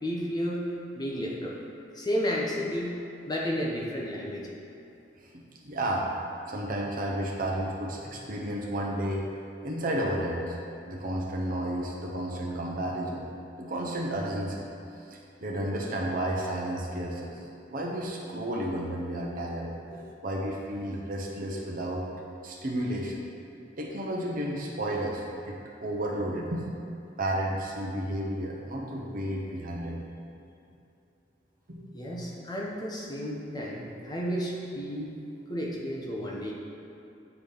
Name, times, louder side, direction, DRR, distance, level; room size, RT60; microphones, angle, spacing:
voice 1, 0.0-0.7 1.0-1.6 1.9-2.9 3.3-4.5 31.9-35.1 35.5-36.5, equal, 20° left, -3 dB, 0.9 m, -32 dB
voice 2, 5.3-6.1 6.5-9.3 9.6-10.6 10.9-13.3 13.6-14.7 15.1-17.4 17.7-22.1 22.4-23.2 23.8-26.7 27.2-30.0 31.7-31.8, right 1 dB, 50° right, -1 dB, 0.9 m, -32 dB
8.1 x 4.0 x 3.5 m, 2.8 s
head